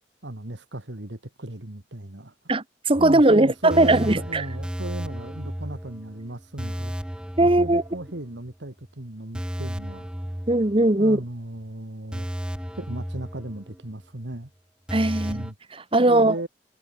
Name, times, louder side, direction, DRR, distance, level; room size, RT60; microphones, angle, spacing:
voice 1, 0.2-2.3 3.0-6.9 7.4-10.1 10.9-12.3 12.7-14.5 15.3-15.5 16.0-16.5, right 1 dB, 75° right, 2.4 m, -36 dB
voice 2, 2.5-4.4 7.4-7.8 10.5-11.2 14.9-15.4 15.7-16.3, right 2 dB, 30° right, 1.3 m, -19 dB
sound 1, 2.9-8.5 8.8-8.9 9.3-11.3 11.6-11.7 12.1-14.0 14.3-14.4 14.9-15.5, equal, 5° right, 0.6 m, -34 dB
head